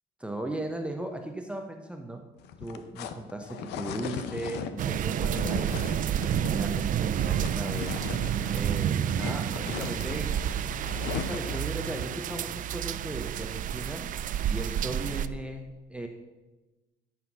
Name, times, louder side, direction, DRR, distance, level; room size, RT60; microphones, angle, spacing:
voice 1, 0.2-2.2 2.6-5.9 6.5-8.0 8.5-10.6 11.0-14.1 14.5-16.1, right 1 dB, 5° right, 4 dB, 0.9 m, -37 dB
sound 1, 2.4-8.7 9.0-11.7, left 8 dB, 85° left, 0.8 m, -38 dB
sound 2, 4.8-15.3, right 10 dB, 50° right, 0.5 m, -30 dB
13.0 x 5.9 x 6.0 m, 1.1 s
cardioid pair, 110°, 17 cm